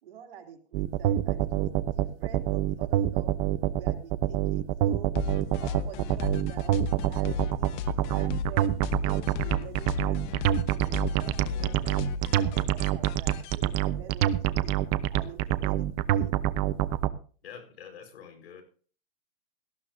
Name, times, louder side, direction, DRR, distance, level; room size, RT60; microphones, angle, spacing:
voice 1, 0.0-3.3 3.7-5.1 5.4-8.7 8.9-10.2 10.7-12.0 12.3-14.8 15.1-16.4, right 9 dB, 60° right, 4 dB, 2.9 m, -47 dB
sound 1, 0.7-17.1, right 12 dB, 35° right, 0.8 m, -26 dB
sound 2, 5.1-13.6, left 6 dB, 45° left, 1.2 m, -35 dB
voice 2, 17.4-18.6, left 7 dB, 70° left, 6 dB, 4.7 m, -46 dB
18.5 x 13.0 x 2.7 m, 0.41 s
hypercardioid pair, 125°, 33 cm